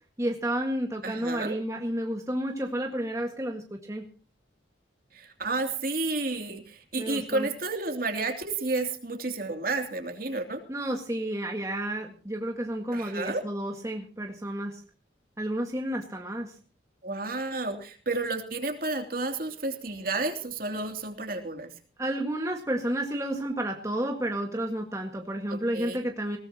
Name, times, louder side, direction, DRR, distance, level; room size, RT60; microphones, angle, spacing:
voice 1, 0.2-4.0 7.0-7.5 10.7-14.8 15.4-16.5 22.0-26.4, right 1 dB, 15° right, 2 dB, 1.8 m, -31 dB
voice 2, 1.0-1.5 5.1-10.6 12.9-13.4 17.0-21.7 25.5-26.0, right 3 dB, 50° right, 4 dB, 3.0 m, -31 dB
20.5 x 18.5 x 3.0 m, 0.37 s
head